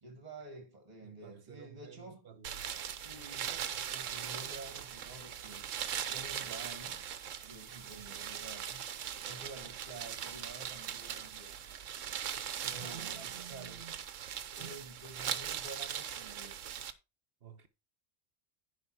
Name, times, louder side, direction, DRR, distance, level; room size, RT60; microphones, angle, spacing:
voice 1, 0.0-2.2 3.0-5.7 6.1-7.0 7.4-8.8 9.3-11.6 12.6-13.8 14.6-16.6, right 2 dB, 35° right, 1.7 m, -50 dB
voice 2, 1.0-2.7 7.8-8.1 12.7-14.0 14.6-14.9 17.4-17.7, right 7 dB, 55° right, 1.2 m, -52 dB
sound 1, 2.4-16.9, right 9 dB, 85° right, 1.2 m, -40 dB
sound 2, 4.9-12.7, equal, 5° left, 1.9 m, -64 dB
10.5 x 5.4 x 4.4 m
omnidirectional pair, 1.3 m